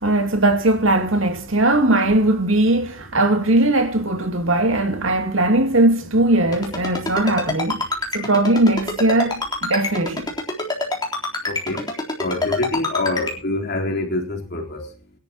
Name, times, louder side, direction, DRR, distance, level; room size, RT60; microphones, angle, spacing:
voice 1, 0.0-7.9 8.1-10.3 11.7-11.8, right 2 dB, 70° right, 2.7 m, -19 dB
Ringtone, 6.5-13.3, left 2 dB, 20° left, 3.7 m, -25 dB
voice 2, 11.4-11.8 12.2-14.8, left 2 dB, 50° left, 3.8 m, -25 dB
22.5 x 11.5 x 3.0 m
head